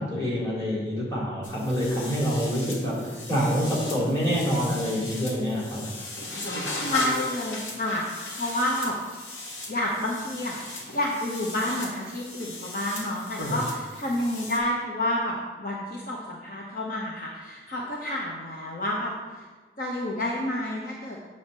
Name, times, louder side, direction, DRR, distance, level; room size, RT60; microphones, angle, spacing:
voice 1, 0.0-5.8, equal, 20° left, -6 dB, 2.4 m, -26 dB
sound 1, 1.4-14.6, left 1 dB, 85° left, 1.7 m, -37 dB
voice 2, 6.7-9.0 9.7-19.1 19.8-21.2, left 1 dB, 50° left, -2 dB, 0.8 m, -29 dB
7.8 x 4.2 x 6.5 m, 1.4 s
head